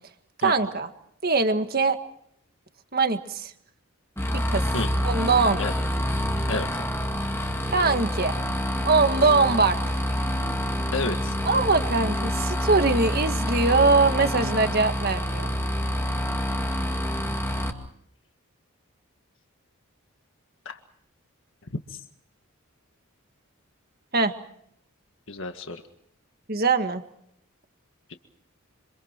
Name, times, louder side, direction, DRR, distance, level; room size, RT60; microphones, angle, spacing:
voice 1, 0.4-0.9 1.2-2.0 2.9-3.5 4.3-4.6 5.0-5.6 7.7-8.4 8.8-10.0 11.4-15.5 24.1-24.3 26.5-27.0, right 3 dB, 45° right, 7 dB, 1.8 m, -22 dB
sound 1, 4.2-17.7, equal, 10° left, 2.3 m, -27 dB
voice 2, 6.5-6.9 10.9-11.4 20.7-20.8 25.3-25.8 28.1-28.2, left 3 dB, 60° left, 5 dB, 1.8 m, -30 dB
27.5 x 27.0 x 4.6 m, 0.71 s
head